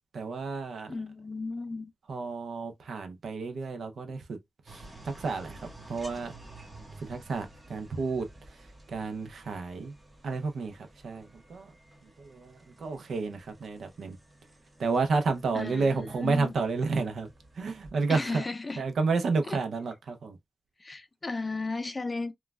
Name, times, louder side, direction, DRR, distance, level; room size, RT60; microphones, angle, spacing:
voice 1, 0.1-0.9 2.1-4.4 4.7-6.3 7.0-8.3 8.9-9.9 10.2-11.7 12.2-14.1 14.8-17.3 17.6-18.4 18.8-20.4, right 4 dB, 75° right, 0.6 m, -31 dB
voice 2, 0.9-1.9 15.5-16.5 18.1-18.8 19.5-19.6 20.8-22.3, left 3 dB, 30° left, 0.5 m, -35 dB
sound 1, 4.7-17.9, right 2 dB, 20° right, 1.0 m, -52 dB
3.1 x 2.3 x 2.3 m
cardioid pair, 70°, 0 cm